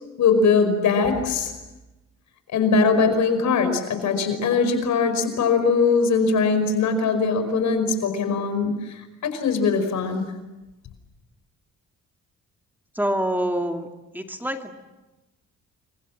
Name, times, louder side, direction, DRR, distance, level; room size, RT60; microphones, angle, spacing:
voice 1, 0.2-1.5 2.5-10.3, left 4 dB, 70° left, 8 dB, 5.4 m, -21 dB
voice 2, 12.9-13.9 14.1-14.7, right 1 dB, 5° right, 4 dB, 2.5 m, -25 dB
28.5 x 24.5 x 7.5 m, 1.1 s
cardioid pair, 90°, 30 cm